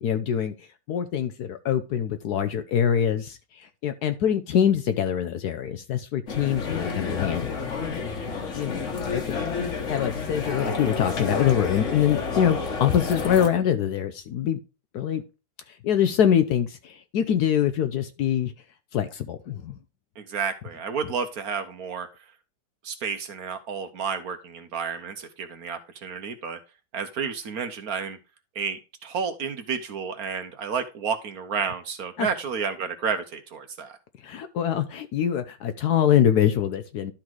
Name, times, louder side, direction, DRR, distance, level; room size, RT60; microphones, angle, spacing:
voice 1, 0.0-7.5 8.0-8.2 8.5-8.8 9.1-9.4 9.9-14.6 14.9-15.2 15.7-18.5 18.9-19.8 32.2-32.3 34.2-37.1, left 9 dB, 65° left, 10 dB, 1.0 m, -24 dB
sound 1, 6.3-13.5, left 4 dB, 45° left, 1.4 m, -30 dB
voice 2, 20.2-22.1 22.8-26.6 26.9-28.2 28.5-34.0, right 6 dB, 60° right, 8 dB, 1.1 m, -31 dB
11.5 x 3.9 x 4.6 m, 0.30 s
omnidirectional pair, 2.1 m